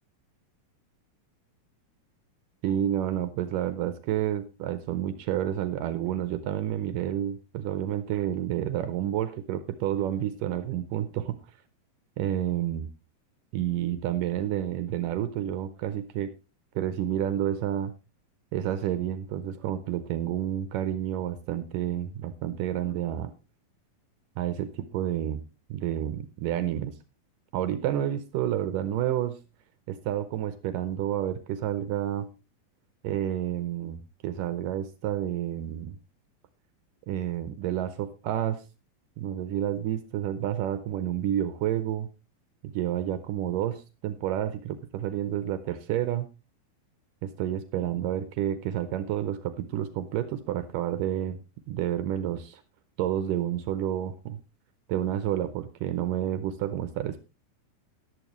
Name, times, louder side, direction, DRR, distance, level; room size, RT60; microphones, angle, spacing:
voice 1, 2.6-11.4 12.2-12.9 13.5-16.3 16.8-17.9 18.5-23.3 24.4-25.4 25.7-26.9 27.5-29.4 29.9-32.3 33.0-36.0 37.1-38.6 39.2-42.1 42.6-46.3 47.2-51.4 51.7-52.6 53.0-54.4 54.9-57.2, right 11 dB, 75° right, 12 dB, 2.3 m, -30 dB
14.0 x 11.5 x 3.1 m, 0.29 s
omnidirectional pair, 4.2 m